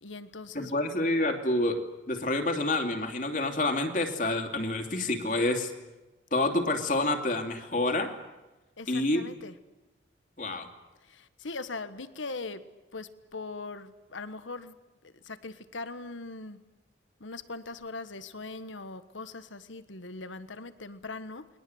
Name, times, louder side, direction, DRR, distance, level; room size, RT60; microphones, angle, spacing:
voice 1, 0.0-0.7 8.8-9.5 11.0-12.6 12.9-14.8 15.0-16.6 17.2-21.5, left 3 dB, 90° left, 12 dB, 1.5 m, -40 dB
voice 2, 0.5-5.7 6.3-8.1 8.9-9.2 10.4-10.7, left 2 dB, 45° left, 5 dB, 2.9 m, -28 dB
29.5 x 22.0 x 8.0 m, 1.1 s
head